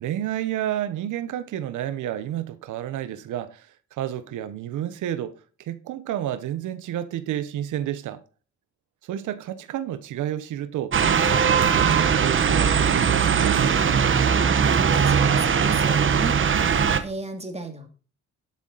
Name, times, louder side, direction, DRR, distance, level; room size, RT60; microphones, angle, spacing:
voice 1, 0.0-5.3 5.6-8.2 9.0-13.6, right 11 dB, 80° right, 1.0 m, -30 dB
sound 1, 10.9-17.0, right 7 dB, 40° right, 1.1 m, -20 dB
voice 2, 14.3-16.4 17.0-17.9, right 3 dB, 20° right, 2.6 m, -34 dB
12.0 x 7.1 x 4.0 m
cardioid pair, 90°, 30 cm